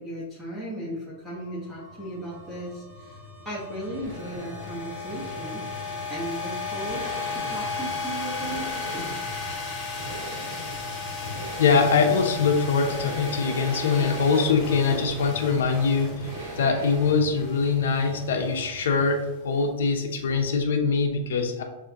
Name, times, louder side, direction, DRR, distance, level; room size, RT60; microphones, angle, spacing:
voice 1, 0.0-3.2 3.4-5.6 6.1-9.1, right 1 dB, ahead, -11 dB, 1.4 m, -36 dB
sound 1, 1.3-19.6, left 4 dB, 25° left, 1.3 m, -36 dB
sound 2, 1.4-19.3, right 1 dB, 80° right, 1.3 m, -41 dB
voice 2, 11.6-16.3 16.6-21.6, left 5 dB, 80° left, 3 dB, 0.7 m, -23 dB
6.6 x 2.7 x 2.9 m, 1.0 s
supercardioid pair, 145°, 0 cm